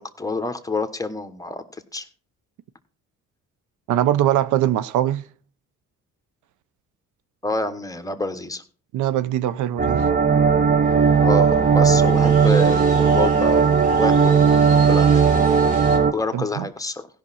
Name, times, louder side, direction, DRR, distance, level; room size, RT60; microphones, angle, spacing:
voice 1, 0.0-1.6 1.9-2.0 7.4-8.6 11.2-14.4 14.7-15.3 16.1-17.1, left 3 dB, 10° left, 1.1 m, -28 dB
voice 2, 3.9-5.2 8.9-10.1 16.3-16.7, right 12 dB, 80° right, 0.6 m, -22 dB
sound 1, 9.8-16.1, right 6 dB, 30° right, 0.7 m, -17 dB
sound 2, 10.8-16.0, right 3 dB, 55° right, 4.6 m, -41 dB
16.0 x 5.8 x 4.1 m
cardioid pair, 90°, 30 cm